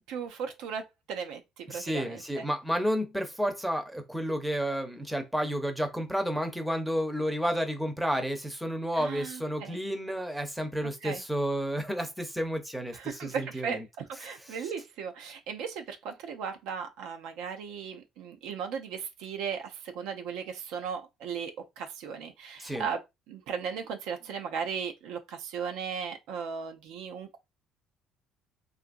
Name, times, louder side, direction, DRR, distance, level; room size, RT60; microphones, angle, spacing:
voice 1, 0.1-2.4 8.9-9.8 11.0-11.2 12.9-23.0 23.3-27.4, right 6 dB, 85° right, 0.5 m, -37 dB
voice 2, 1.7-13.0 13.2-13.8 22.6-22.9, equal, ahead, 0.6 m, -31 dB
2.8 x 2.5 x 2.5 m
cardioid pair, 110°, 0 cm